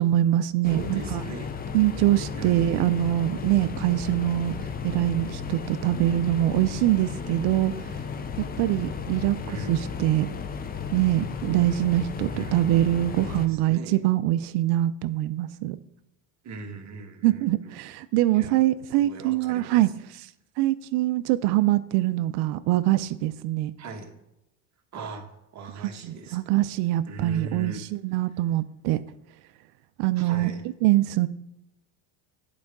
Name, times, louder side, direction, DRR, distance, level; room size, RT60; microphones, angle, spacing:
voice 1, 0.0-1.2 1.7-4.5 4.8-7.9 8.6-9.4 9.7-10.3 10.9-15.8 17.2-20.3 20.6-23.7 25.8-29.0 30.0-30.5 30.8-31.3, right 14 dB, 60° right, 14 dB, 0.5 m, -24 dB
sound 1, 0.6-13.5, left 6 dB, 20° left, 0.4 m, -34 dB
voice 2, 0.7-1.5 2.3-3.0 9.4-10.0 12.3-12.7 13.2-14.0 16.4-17.8 18.3-18.6 19.0-19.9 23.8-24.1 24.9-26.4 27.1-27.8 30.1-30.6, right 3 dB, 35° right, 3 dB, 1.4 m, -40 dB
10.5 x 4.8 x 3.6 m, 0.88 s
supercardioid pair, 120°, 46 cm